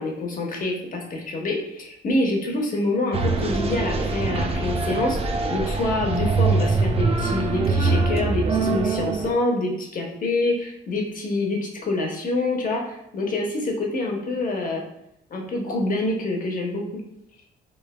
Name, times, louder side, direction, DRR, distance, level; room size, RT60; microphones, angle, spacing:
voice 1, 0.0-14.8 15.3-17.0, left 2 dB, 45° left, 1 dB, 0.7 m, -26 dB
sound 1, 3.1-9.3, right 3 dB, 30° right, 0.3 m, -23 dB
3.2 x 2.1 x 2.3 m, 0.80 s
cardioid pair, 90°, 20 cm